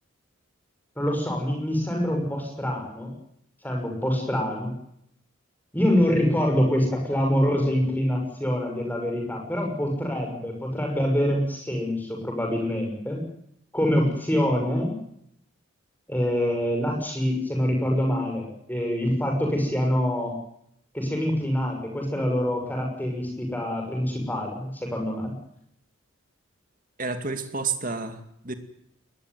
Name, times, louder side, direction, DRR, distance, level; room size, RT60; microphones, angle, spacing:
voice 1, 1.0-3.1 3.6-4.7 5.7-13.2 13.7-14.9 16.1-20.3 20.9-25.3, equal, 10° left, 1 dB, 6.5 m, -25 dB
voice 2, 27.0-28.5, right 4 dB, 40° right, 7 dB, 2.4 m, -30 dB
22.0 x 20.0 x 9.5 m, 0.75 s
head